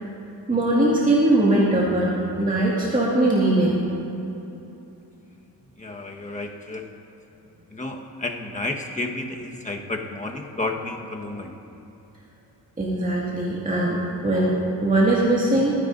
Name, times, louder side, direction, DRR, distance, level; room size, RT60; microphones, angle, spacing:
voice 1, 0.5-2.1 2.4-3.8 12.8-15.7, right 1 dB, 20° right, -6 dB, 2.1 m, -20 dB
voice 2, 5.8-6.9 7.7-11.5, left 2 dB, 20° left, 1 dB, 1.4 m, -31 dB
25.0 x 10.0 x 2.7 m, 2.9 s
cardioid pair, 80°, 38 cm